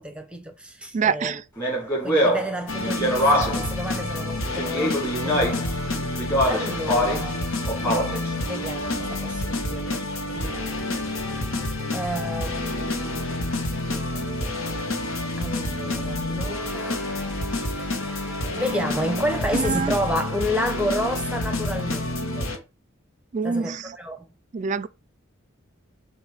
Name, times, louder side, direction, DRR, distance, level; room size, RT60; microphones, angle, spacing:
voice 1, 0.0-1.4 2.0-6.0 6.4-7.4 7.8-10.1 10.3-10.7 11.9-13.5 15.4-17.1 18.5-22.1 22.3-22.5 23.4-24.3, equal, 5° right, 0.8 m, -31 dB
voice 2, 0.9-1.4 19.5-20.0 23.3-24.0 24.5-24.9, right 5 dB, 35° right, 0.3 m, -25 dB
Speech, 1.6-3.7 4.5-5.7 6.2-7.3 7.7-8.3, equal, 10° left, 2.1 m, -23 dB
sound 1, 2.7-22.6, left 2 dB, 80° left, 1.3 m, -29 dB
sound 2, 3.2-22.1, equal, 30° left, 1.6 m, -41 dB
7.4 x 2.6 x 4.8 m
head